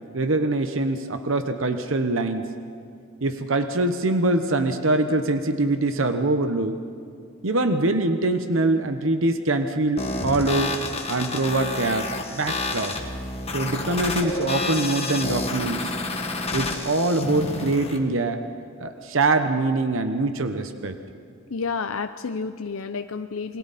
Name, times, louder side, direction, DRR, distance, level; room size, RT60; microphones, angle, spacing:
voice 1, 0.1-2.5 3.2-6.8 7.4-10.7 11.1-12.9 13.5-15.9 16.5-18.4 18.8-21.0, right 2 dB, 70° right, 8 dB, 1.1 m, -23 dB
sound 1, 10.0-18.0, left 2 dB, 30° left, 1.7 m, -29 dB
voice 2, 21.5-23.6, left 5 dB, 80° left, 8 dB, 0.6 m, -30 dB
29.0 x 22.5 x 4.3 m, 2.4 s
head